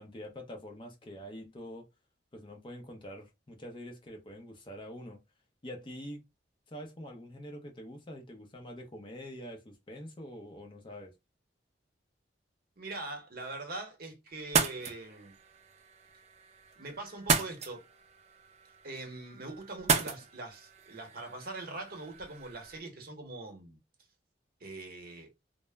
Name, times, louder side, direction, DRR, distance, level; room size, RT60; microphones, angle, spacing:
voice 1, 0.0-1.9 2.3-5.2 5.6-6.2 6.7-11.1, equal, 30° left, 0.5 m, -45 dB
voice 2, 12.8-15.4 16.8-17.9 18.8-23.8 24.6-25.3, right 2 dB, 55° right, 0.8 m, -42 dB
sound 1, 14.4-22.8, right 5 dB, 40° right, 0.4 m, -35 dB
2.0 x 2.0 x 3.3 m
head